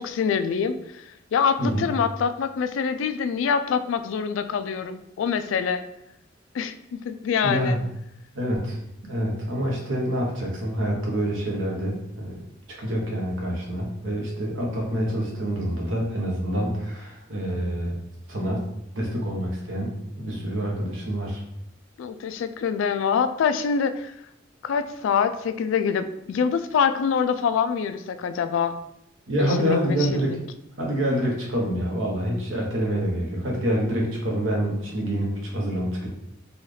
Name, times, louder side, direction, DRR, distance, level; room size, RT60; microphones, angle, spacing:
voice 1, 0.0-5.8 6.5-6.7 7.0-7.8 22.0-24.1 24.6-28.8 29.4-30.4, left 6 dB, 75° left, 10 dB, 0.3 m, -25 dB
voice 2, 7.4-7.8 8.3-8.8 9.1-12.4 12.8-18.0 18.3-18.7 18.9-21.4 29.3-30.4 30.8-36.1, equal, 85° right, -1 dB, 1.0 m, -26 dB
4.0 x 2.3 x 3.2 m, 0.80 s
head